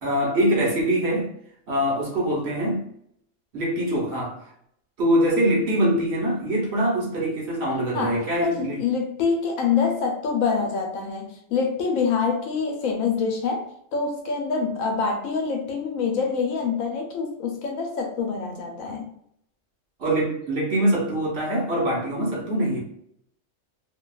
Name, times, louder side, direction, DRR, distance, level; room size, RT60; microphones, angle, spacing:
voice 1, 0.0-1.3 1.7-2.8 3.5-4.4 5.0-8.8 20.0-22.8, right 1 dB, 55° right, 1.0 m, -23 dB
voice 2, 7.9-19.0, left 5 dB, 85° left, 1.1 m, -26 dB
2.7 x 2.3 x 2.3 m
omnidirectional pair, 1.4 m